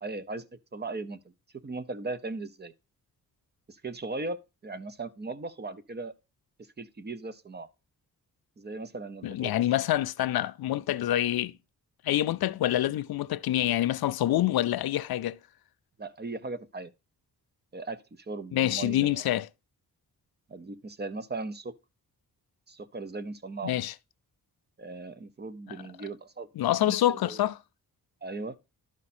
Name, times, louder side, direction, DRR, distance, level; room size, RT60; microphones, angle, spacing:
voice 1, 0.0-0.5 0.7-1.3 1.6-2.7 3.7-6.1 6.8-7.7 8.6-9.5 16.0-16.9 17.7-19.2 20.5-21.7 22.7-23.7 24.8-26.5 26.8-27.5 28.2-28.6, right 3 dB, 25° right, 0.7 m, -38 dB
voice 2, 9.2-11.5 12.0-15.4 18.5-19.5 23.6-23.9 26.6-27.6, left 13 dB, 75° left, 0.5 m, -26 dB
12.0 x 4.9 x 4.3 m
wide cardioid pair, 130°, 37 cm